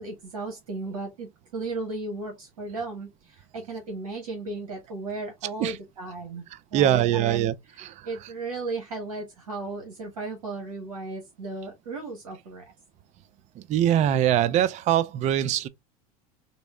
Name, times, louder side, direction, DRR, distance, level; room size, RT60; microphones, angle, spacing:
voice 1, 0.0-6.4 6.7-12.7, right 3 dB, 85° right, 1.3 m, -35 dB
voice 2, 6.7-8.1 13.6-15.7, right 11 dB, 35° right, 0.4 m, -23 dB
3.9 x 2.0 x 3.5 m
hypercardioid pair, 95°, 19 cm